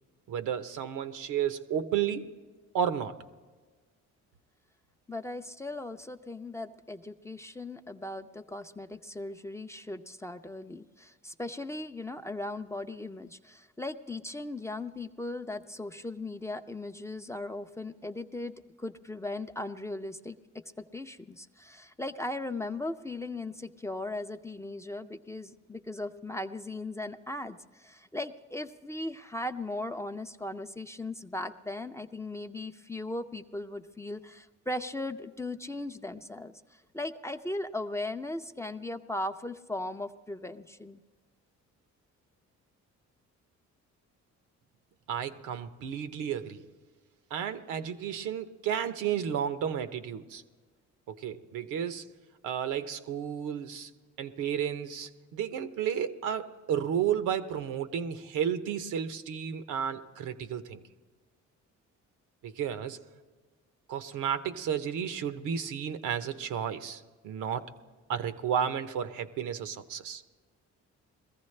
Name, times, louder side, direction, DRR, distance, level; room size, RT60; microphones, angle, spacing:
voice 1, 0.3-2.3 2.7-3.2 45.1-46.6 47.3-50.4 51.1-52.0 52.4-53.9 54.2-60.8 62.4-63.0 63.9-67.7 68.1-70.2, right 8 dB, 85° right, 10 dB, 0.8 m, -32 dB
voice 2, 5.1-41.0, left 2 dB, 10° left, 8 dB, 0.4 m, -38 dB
21.0 x 14.5 x 3.2 m, 1.4 s
cardioid pair, 90°, 30 cm